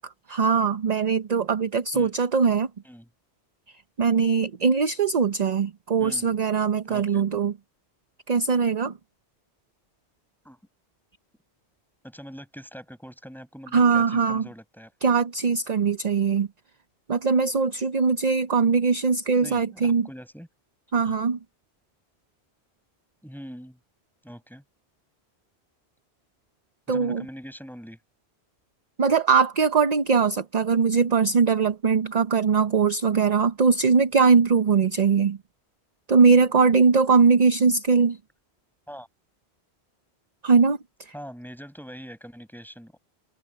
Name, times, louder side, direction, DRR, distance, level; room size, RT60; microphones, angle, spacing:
voice 1, 0.3-2.7 4.0-7.5 8.3-8.9 13.7-14.4 15.0-16.5 17.1-20.1 20.9-21.4 26.9-27.2 29.0-35.4 36.1-38.2 40.4-40.8, right 5 dB, 45° right, 0.7 m, -21 dB
voice 2, 6.0-6.3 6.9-7.2 10.4-10.6 12.0-15.1 19.4-20.5 21.0-21.2 23.2-23.8 24.2-24.6 26.9-28.0 36.3-36.5 38.9-39.1 41.1-43.0, equal, ahead, 8.0 m, -43 dB
omnidirectional pair, 1.1 m